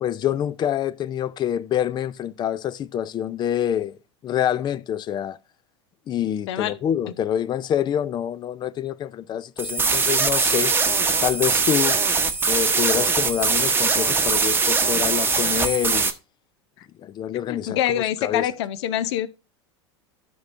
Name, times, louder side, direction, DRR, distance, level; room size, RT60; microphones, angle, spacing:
voice 1, 0.0-5.4 6.1-10.7 11.2-12.0 12.4-16.1 17.0-18.5, left 10 dB, 30° left, 0.4 m, -26 dB
sound 1, 9.6-16.1, right 4 dB, 15° right, 0.9 m, -21 dB
voice 2, 17.5-19.3, left 11 dB, 65° left, 0.7 m, -25 dB
12.5 x 5.4 x 2.5 m
hypercardioid pair, 90°, 15 cm